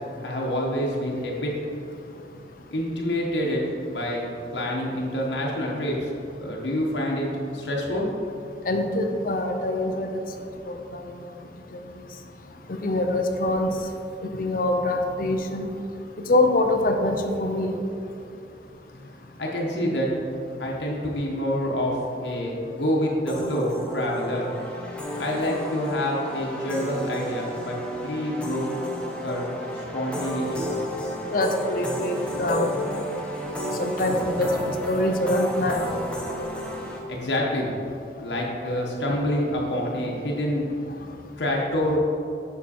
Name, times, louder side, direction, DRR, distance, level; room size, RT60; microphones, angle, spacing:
voice 1, 0.2-1.5 2.7-3.6 3.9-4.3 4.5-6.1 6.4-7.3 7.5-8.1 19.4-20.1 20.6-24.5 25.2-27.8 28.0-28.7 29.2-30.7 37.1-37.7 38.2-40.6 41.4-42.0, equal, 85° left, -3 dB, 1.2 m, -27 dB
voice 2, 8.7-10.1 10.7-11.0 12.8-13.7 14.3-15.7 16.3-17.8 31.3-33.0 33.8-35.8, left 1 dB, 50° left, 5 dB, 0.7 m, -24 dB
sound 1, 23.3-37.0, equal, 5° left, 0.8 m, -32 dB
7.2 x 5.9 x 4.3 m, 2.6 s
head